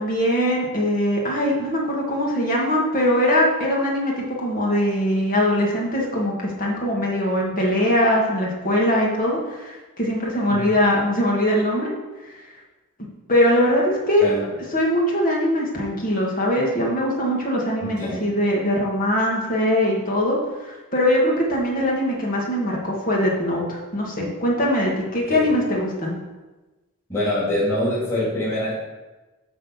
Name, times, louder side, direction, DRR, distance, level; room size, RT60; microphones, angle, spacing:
voice 1, 0.0-11.9 12.2-12.4 13.3-14.3 14.7-26.2, left 1 dB, 40° left, -3 dB, 2.1 m, -21 dB
voice 2, 17.8-18.2 25.3-25.5 27.1-28.7, left 1 dB, 15° left, -9 dB, 3.4 m, -24 dB
11.0 x 4.2 x 7.2 m, 1.1 s
head